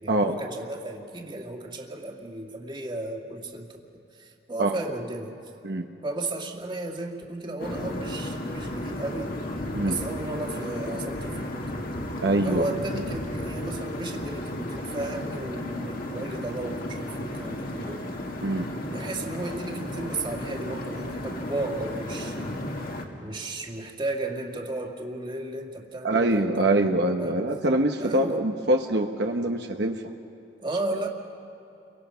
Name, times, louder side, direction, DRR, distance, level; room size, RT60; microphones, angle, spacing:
voice 1, 0.0-3.8 4.1-5.4 6.0-9.4 9.8-11.5 12.4-18.1 18.8-22.6 23.2-26.7 27.2-27.4 28.0-28.4 30.6-31.1, right 2 dB, 25° right, 2 dB, 2.0 m, -34 dB
sound 1, 7.6-23.1, left 1 dB, 55° left, 2.2 m, -34 dB
voice 2, 12.2-12.7 18.4-18.7 26.0-30.0, right 1 dB, 65° right, 3 dB, 1.2 m, -24 dB
30.0 x 24.0 x 5.7 m, 2.8 s
head